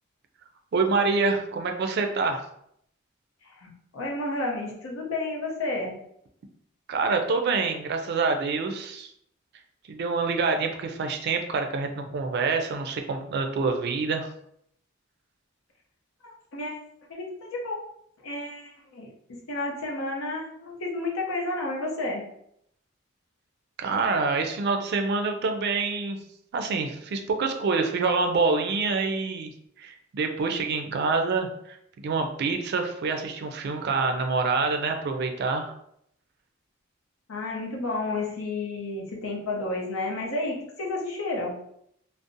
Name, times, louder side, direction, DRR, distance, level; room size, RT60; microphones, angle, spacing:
voice 1, 0.7-2.4 6.9-9.1 9.9-14.3 23.8-26.2 26.5-29.5 29.8-35.8, right 4 dB, 55° right, 5 dB, 0.4 m, -26 dB
voice 2, 3.6-5.9 16.5-16.8 17.1-17.8 18.2-22.2 37.3-41.5, left 2 dB, 85° left, -1 dB, 0.6 m, -31 dB
2.6 x 2.0 x 2.5 m, 0.73 s
head